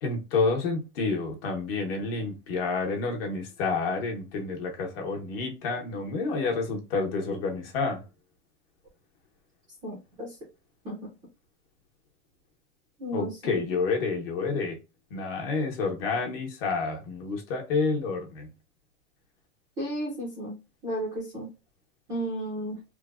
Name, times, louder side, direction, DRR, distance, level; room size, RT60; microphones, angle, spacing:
voice 1, 0.0-8.0 13.1-14.8 15.1-18.5, left 4 dB, 50° left, 0.9 m, -29 dB
voice 2, 9.8-10.4 10.8-11.0 13.0-13.6 19.8-20.6 20.8-21.5 22.1-22.8, right 1 dB, 10° right, 0.4 m, -33 dB
3.2 x 2.0 x 2.3 m
supercardioid pair, 160°, 38 cm